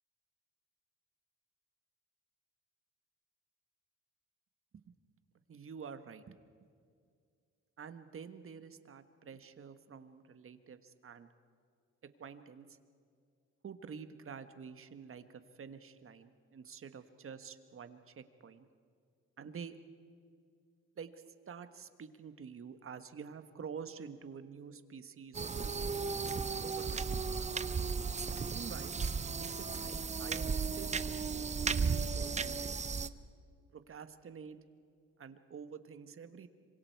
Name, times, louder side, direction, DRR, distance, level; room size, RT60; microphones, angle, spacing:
voice 1, 5.5-6.4 7.8-11.3 12.0-12.8 13.6-18.7 19.4-19.7 21.0-27.1 28.4-29.0 29.3-31.0 31.6-32.8 33.7-34.6 35.2-36.5, right 6 dB, 45° right, 10 dB, 1.4 m, -49 dB
sound 1, 25.3-33.1, right 5 dB, 25° right, 0.7 m, -35 dB
26.0 x 24.5 x 4.7 m, 2.2 s
cardioid pair, 90°, 30 cm